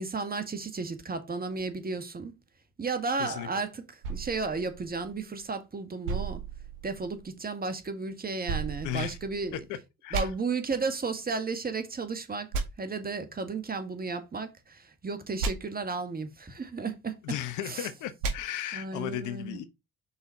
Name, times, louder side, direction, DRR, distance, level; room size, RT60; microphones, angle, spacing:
voice 1, 0.0-2.4 2.8-6.4 6.8-9.6 10.1-12.5 12.8-17.4 17.6-17.9 18.7-19.6, right 4 dB, 25° right, 1.7 m, -33 dB
sound 1, 4.0-5.5 6.0-7.3 8.5-9.6 10.1-10.2 12.5-12.6 15.4-15.5 18.2-18.3, right 4 dB, 70° right, 2.0 m, -34 dB
voice 2, 8.8-9.2 9.5-9.6 10.0-10.3 17.2-19.6, left 12 dB, 65° left, 1.0 m, -35 dB
5.6 x 4.1 x 4.5 m
hypercardioid pair, 60°, 33 cm